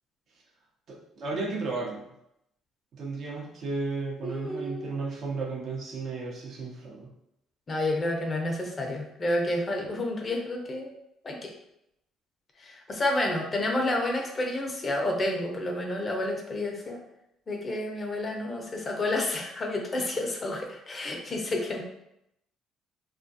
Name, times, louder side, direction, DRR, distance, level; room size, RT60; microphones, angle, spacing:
voice 1, 0.9-2.1 2.9-7.1, right 3 dB, 60° right, -2 dB, 0.7 m, -34 dB
voice 2, 4.2-5.0 7.7-10.9 11.2-11.5 12.6-17.0 17.5-21.8, left 1 dB, 35° left, 1 dB, 0.6 m, -30 dB
2.3 x 2.2 x 2.6 m, 0.82 s
supercardioid pair, 65°, 0 cm